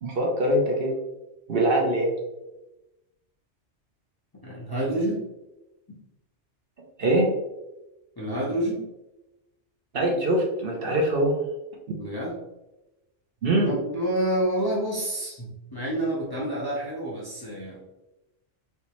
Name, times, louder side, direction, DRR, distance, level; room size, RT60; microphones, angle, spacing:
voice 1, 0.0-0.9 1.5-2.1 7.0-7.3 9.9-11.4 13.4-13.7, right 1 dB, 60° right, -1 dB, 0.8 m, -23 dB
voice 2, 4.4-5.2 8.2-8.8 12.0-12.4 13.7-17.8, right 1 dB, 25° left, -6 dB, 0.6 m, -28 dB
3.3 x 2.9 x 2.9 m, 0.98 s
omnidirectional pair, 1.2 m